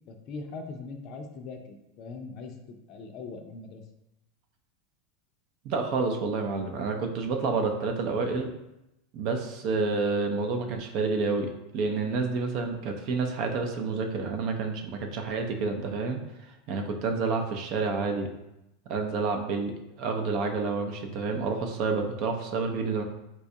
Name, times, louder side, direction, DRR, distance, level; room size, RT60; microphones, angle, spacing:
voice 1, 0.1-3.8, left 4 dB, 50° left, 6 dB, 0.5 m, -41 dB
voice 2, 5.6-8.5 9.1-18.3 18.9-23.0, right 4 dB, 55° right, 4 dB, 0.5 m, -29 dB
4.2 x 2.3 x 2.7 m, 0.90 s
supercardioid pair, 115°, 0 cm